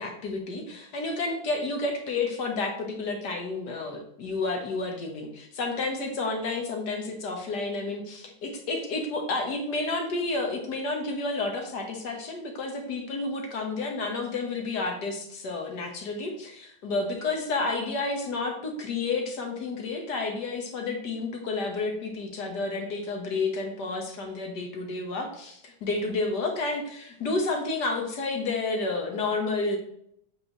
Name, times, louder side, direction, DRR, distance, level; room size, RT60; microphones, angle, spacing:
voice 1, 0.0-29.8, left 3 dB, 55° left, 3 dB, 1.7 m, -30 dB
7.6 x 5.4 x 3.0 m, 0.72 s
omnidirectional pair, 2.2 m